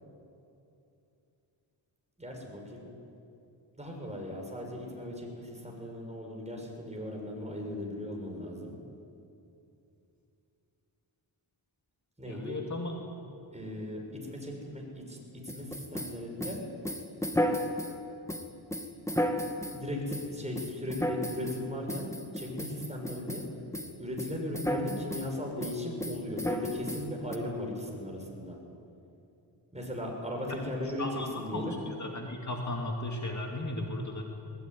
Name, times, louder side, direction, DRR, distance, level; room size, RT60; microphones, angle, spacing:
voice 1, 2.2-2.9 3.8-8.7 12.2-12.6 13.5-15.2 15.4-16.6 19.7-23.4 24.0-28.6 29.7-31.8, left 1 dB, 15° right, 0 dB, 6.6 m, -37 dB
voice 2, 12.2-13.0 30.5-30.6 31.0-31.3 31.5-34.2, left 1 dB, 40° left, 1 dB, 2.5 m, -36 dB
sound 1, 15.5-17.9 18.3-19.8 20.1-20.3 20.5-21.6 21.9-23.5 23.7-23.9 24.2-25.3 25.6-27.4, equal, 5° left, 2.0 m, -33 dB
21.0 x 20.5 x 9.6 m, 2.7 s
cardioid pair, 75°, 46 cm